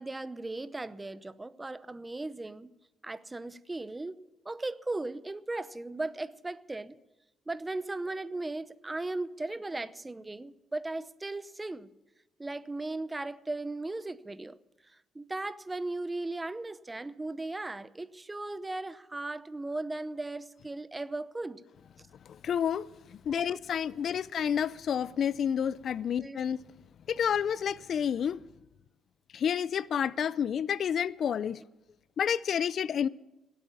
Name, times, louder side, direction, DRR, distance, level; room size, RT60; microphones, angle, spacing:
voice 1, 0.0-2.7 3.0-7.0 7.5-11.9 12.4-14.5 15.1-21.6 23.3-23.6 26.2-26.4, right 2 dB, 20° right, 0.7 m, -37 dB
voice 2, 22.3-26.6 27.1-28.4 29.3-31.6 32.2-33.1, left 8 dB, 60° left, 0.4 m, -30 dB
17.5 x 8.4 x 7.2 m
cardioid pair, 90°, 0 cm